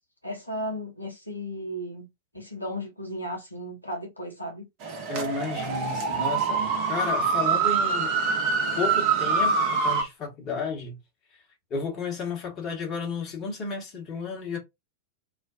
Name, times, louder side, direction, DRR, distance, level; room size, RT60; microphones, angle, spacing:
voice 1, 0.2-2.1 2.3-4.7, equal, 90° left, 0.7 m, -35 dB
sound 1, 4.8-10.0, right 5 dB, 45° right, 0.8 m, -25 dB
voice 2, 5.1-8.1 8.8-11.0 11.7-14.6, left 5 dB, 35° left, 1.1 m, -32 dB
2.4 x 2.1 x 2.4 m
figure-of-eight pair, 90°, 0 cm